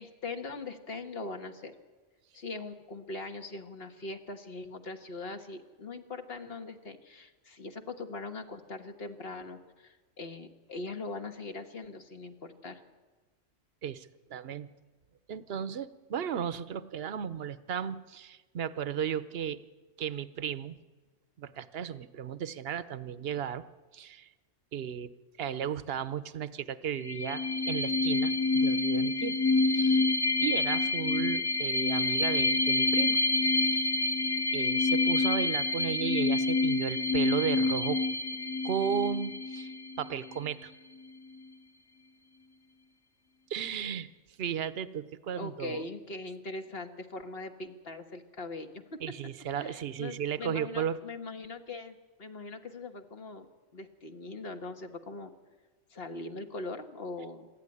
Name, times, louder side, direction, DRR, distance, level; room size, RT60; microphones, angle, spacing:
voice 1, 0.0-1.8 2.3-12.8 45.4-49.2 49.5-55.3 55.9-57.5, left 3 dB, 50° left, 6 dB, 1.7 m, -41 dB
voice 2, 13.8-14.7 15.3-19.6 20.0-20.8 21.4-23.6 23.9-24.3 24.7-25.1 25.4-29.4 29.7-30.1 30.4-33.2 33.6-33.9 34.5-38.0 38.6-39.7 40.0-40.7 43.5-44.1 44.4-45.9 49.0-51.0, right 8 dB, 55° right, 14 dB, 1.0 m, -35 dB
sound 1, 27.0-40.4, left 2 dB, 20° left, 0.9 m, -27 dB
26.0 x 12.5 x 9.9 m, 1.3 s
omnidirectional pair, 1.3 m